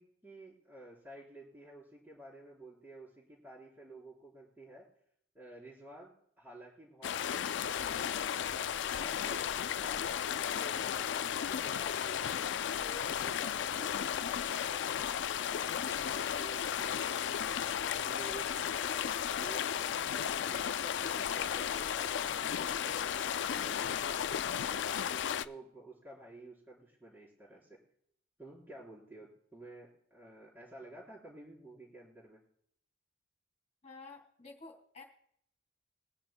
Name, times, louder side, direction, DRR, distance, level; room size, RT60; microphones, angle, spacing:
voice 1, 0.0-4.9 5.3-10.0 10.4-12.4 12.8-14.4 14.7-19.1 19.4-19.7 20.0-27.8 28.4-32.4, right 2 dB, 10° right, -6 dB, 3.7 m, -52 dB
sound 1, 7.0-25.5, left 9 dB, 70° left, 0.3 m, -34 dB
voice 2, 33.8-35.0, left 3 dB, 35° left, 1 dB, 2.3 m, -51 dB
22.5 x 10.0 x 2.2 m, 0.69 s
head